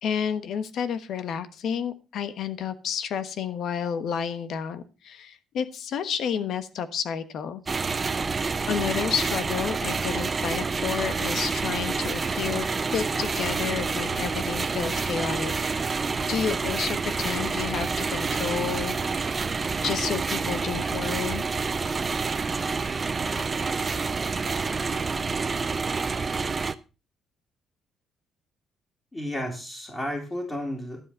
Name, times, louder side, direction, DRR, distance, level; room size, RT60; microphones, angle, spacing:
voice 1, 0.0-7.6 8.7-12.7 12.9-15.5 16.3-19.5 19.8-21.4, left 7 dB, 55° left, 12 dB, 1.2 m, -31 dB
sound 1, 7.7-26.7, right 4 dB, 25° right, 0.6 m, -28 dB
voice 2, 29.1-31.0, left 1 dB, 10° left, -2 dB, 2.7 m, -32 dB
11.5 x 7.9 x 5.5 m, 0.31 s
cardioid pair, 160°, 0 cm